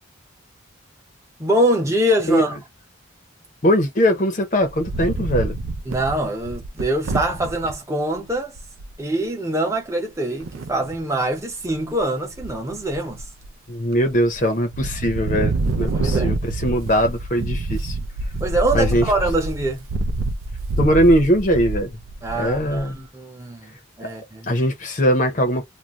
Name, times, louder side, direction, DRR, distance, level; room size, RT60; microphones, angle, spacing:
voice 1, 1.4-2.6 5.9-8.6 9.0-13.3 15.9-16.4 18.4-19.9 22.2-24.6, right 1 dB, 15° right, 0.7 m, -24 dB
voice 2, 3.6-5.6 13.7-16.4 16.6-18.0 18.7-19.0 20.8-21.9 22.4-23.0 24.0-24.1 24.5-25.7, equal, 40° left, 0.7 m, -20 dB
Wind, 4.6-7.7 8.3-8.4 8.6-8.9 10.4-11.0 11.5-12.0 12.3-13.5 14.0-14.4 14.7-22.9, right 2 dB, 85° right, 0.5 m, -27 dB
2.5 x 2.1 x 3.0 m
head